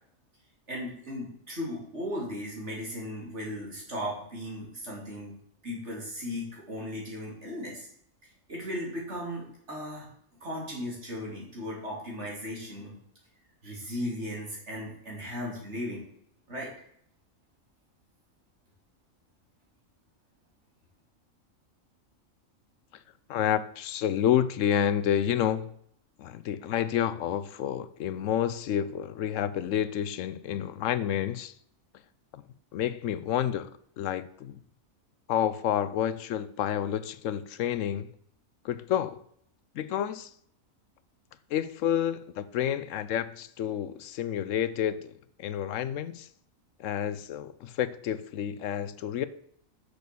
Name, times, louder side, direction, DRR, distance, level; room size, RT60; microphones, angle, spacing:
voice 1, 0.7-5.3 5.6-7.9 8.5-10.1 10.4-12.9 13.6-16.0 16.5-16.7, equal, 55° right, 3.5 m, -36 dB
voice 2, 23.3-25.7 26.2-31.5 32.3-32.4 32.7-33.7 34.0-34.6 35.3-38.1 38.6-39.2 39.7-40.3 41.5-45.1 45.4-46.3 46.8-49.3, left 10 dB, 70° left, 0.9 m, -29 dB
6.7 x 6.2 x 6.9 m
omnidirectional pair, 1.4 m